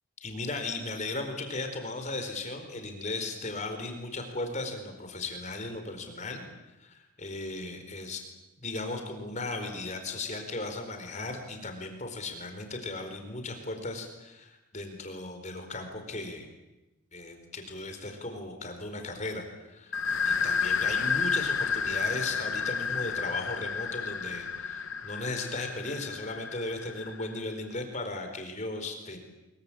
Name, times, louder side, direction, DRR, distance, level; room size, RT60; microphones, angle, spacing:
voice 1, 0.2-6.4 6.8-8.2 8.6-16.5 17.1-29.2, left 2 dB, 35° left, 6 dB, 4.5 m, -36 dB
sound 1, 19.9-27.4, left 6 dB, 60° left, 1.0 m, -31 dB
25.0 x 23.0 x 8.7 m, 1.0 s
head